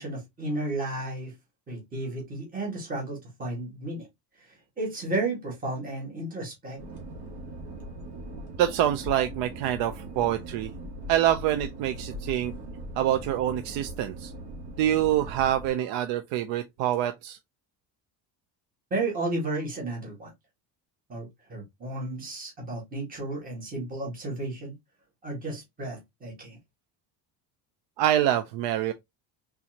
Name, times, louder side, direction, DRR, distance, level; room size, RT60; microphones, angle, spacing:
voice 1, 0.0-1.3 1.7-4.1 4.4-6.8 18.9-20.3 21.1-24.7 25.2-26.6, right 2 dB, 20° right, 1.9 m, -33 dB
sound 1, 6.8-15.7, right 1 dB, 55° right, 1.8 m, -40 dB
voice 2, 8.3-10.7 11.1-12.5 13.0-14.3 14.8-17.4 28.0-28.9, right 12 dB, 70° right, 0.6 m, -26 dB
4.3 x 3.7 x 2.9 m
cardioid pair, 175°, 45 cm